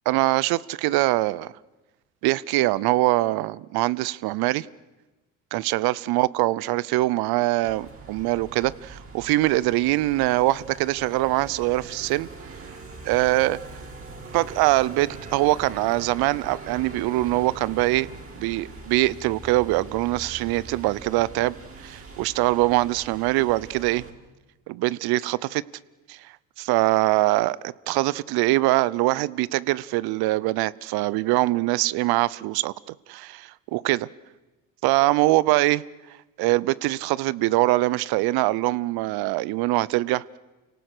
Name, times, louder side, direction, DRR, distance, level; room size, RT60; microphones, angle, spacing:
voice 1, 0.1-1.5 2.2-4.7 5.5-12.3 13.0-13.6 14.3-18.1 18.4-21.5 21.8-24.0 24.7-25.6 26.1-26.2 26.6-27.6 27.9-34.1 34.8-35.8 36.4-40.4, right 19 dB, 65° right, 0.7 m, -23 dB
sound 1, 7.6-24.1, right 3 dB, 35° right, 4.9 m, -42 dB
29.5 x 18.0 x 6.7 m
hypercardioid pair, 60°, 40 cm